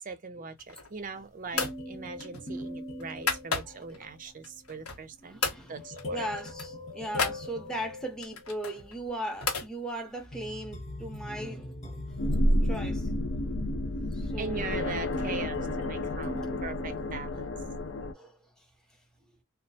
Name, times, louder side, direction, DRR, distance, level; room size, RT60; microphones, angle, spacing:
voice 1, 0.0-5.4 5.7-6.2 14.4-17.4, right 4 dB, 40° right, 0.5 m, -40 dB
sound 1, 0.6-1.1 1.5-1.8 2.2-4.0 4.4-5.1 5.4-5.6 6.0-6.1 6.4-7.4 8.2-9.7, left 4 dB, 90° left, 1.0 m, -33 dB
sound 2, 1.5-4.1 5.8-8.7 10.2-17.5, left 1 dB, 30° left, 0.8 m, -41 dB
voice 2, 5.2-12.0 12.6-13.1 14.1-14.6 16.2-16.6 16.9-17.0 18.1-18.4, right 1 dB, 5° left, 0.7 m, -38 dB
sound 3, 12.1-18.1, left 1 dB, 60° left, 0.5 m, -30 dB
2.3 x 2.1 x 2.7 m
head